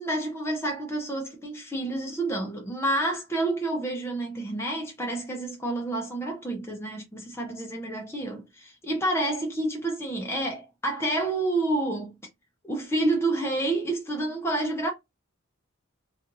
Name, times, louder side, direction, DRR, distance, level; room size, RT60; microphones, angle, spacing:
voice 1, 0.0-12.2 12.6-14.9, right 2 dB, 10° left, 0.6 m, -29 dB
2.5 x 2.4 x 2.9 m
head